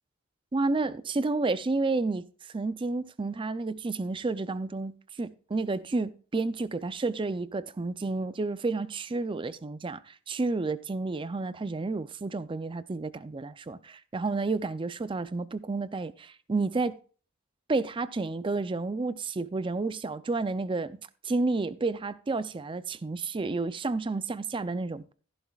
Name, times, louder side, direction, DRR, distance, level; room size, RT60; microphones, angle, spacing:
voice 1, 0.5-4.9 5.2-17.0 17.7-21.0 21.2-25.1, right 3 dB, 25° right, 0.4 m, -31 dB
14.5 x 11.5 x 2.4 m
head